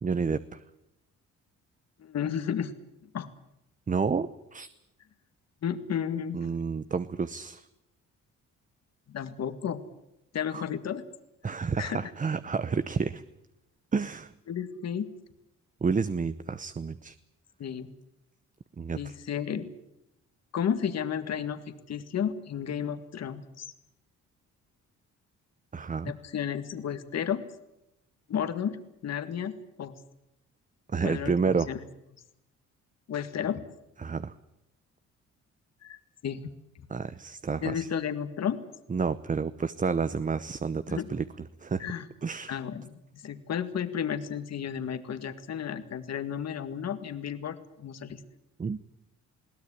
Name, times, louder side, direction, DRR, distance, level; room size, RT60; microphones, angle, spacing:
voice 1, 0.0-0.6 3.9-4.7 6.3-7.7 10.5-10.6 11.4-13.2 13.9-14.3 15.8-17.1 18.8-19.1 25.7-26.1 30.9-31.7 34.0-34.3 36.9-37.9 38.9-41.2 41.6-41.9 42.2-42.6 48.6-48.8, right 5 dB, 25° right, 13 dB, 0.8 m, -30 dB
voice 2, 2.0-2.7 3.1-3.3 5.6-6.4 9.1-9.8 10.3-11.0 11.8-12.1 14.5-15.1 17.6-17.9 18.9-19.7 20.5-23.7 26.0-27.4 28.3-28.8 29.0-30.0 31.0-31.8 33.1-33.6 35.8-36.4 37.6-38.6 40.9-41.1 41.8-42.1 42.5-48.2, left 8 dB, 60° left, 10 dB, 2.0 m, -32 dB
21.5 x 17.0 x 9.8 m, 0.87 s
cardioid pair, 90°, 30 cm